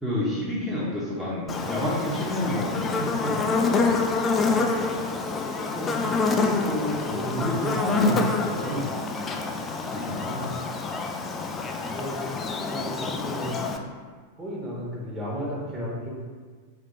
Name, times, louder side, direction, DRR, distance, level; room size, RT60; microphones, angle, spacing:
voice 1, 0.0-4.1 7.4-8.8 9.9-10.1, left 1 dB, ahead, -10 dB, 0.9 m, -29 dB
Buzz, 1.5-13.8, left 4 dB, 20° left, 0.4 m, -27 dB
voice 2, 5.7-7.5 7.9-8.2 8.5-8.9 9.3-9.4 9.8-10.5 11.8-12.2 12.7-13.6 14.4-16.1, equal, 20° right, -5 dB, 1.3 m, -33 dB
3.6 x 2.8 x 4.2 m, 1.5 s
figure-of-eight pair, 90°, 0 cm